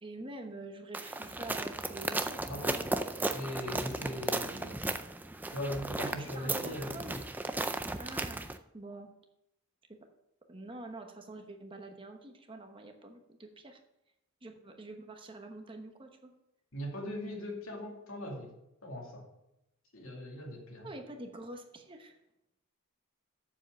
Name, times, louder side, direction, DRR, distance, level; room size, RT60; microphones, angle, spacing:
voice 1, 0.0-2.9 3.7-3.9 6.0-7.2 8.0-8.5 8.7-9.3 9.9-10.1 10.5-13.8 14.4-16.3 20.8-22.2, right 2 dB, 25° right, 4 dB, 1.0 m, -46 dB
sound 1, 0.9-8.6, right 2 dB, 10° right, 0.3 m, -35 dB
voice 2, 2.5-2.8 3.3-4.8 5.5-7.2 16.7-18.5 18.8-19.2 19.9-20.9, left 1 dB, 80° left, -1 dB, 2.5 m, -40 dB
7.3 x 7.2 x 6.6 m, 0.86 s
head